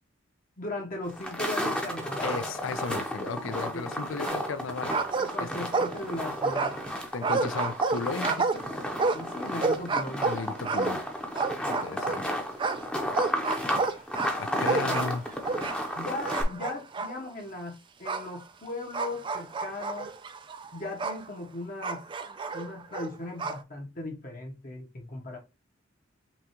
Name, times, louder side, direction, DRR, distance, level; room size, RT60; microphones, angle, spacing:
voice 1, 0.6-2.4 3.7-3.9 5.2-6.8 9.1-10.3 14.5-15.0 16.0-20.1 20.7-22.0 22.5-25.4, left 2 dB, 45° left, 1.0 m, -38 dB
sound 1, 1.1-16.4, equal, 5° left, 0.7 m, -33 dB
voice 2, 2.2-5.0 5.4-5.7 7.1-8.6 10.2-11.0 11.6-12.2 13.4-13.9 14.4-15.2 16.5-16.6, left 4 dB, 70° left, 0.5 m, -35 dB
sound 2, 4.3-4.6 4.9-6.1 6.4-12.2 12.6-16.0 16.2-17.1 18.1-18.3 18.9-21.2 21.8-23.6, right 4 dB, 25° right, 0.3 m, -30 dB
5.9 x 2.4 x 2.9 m
head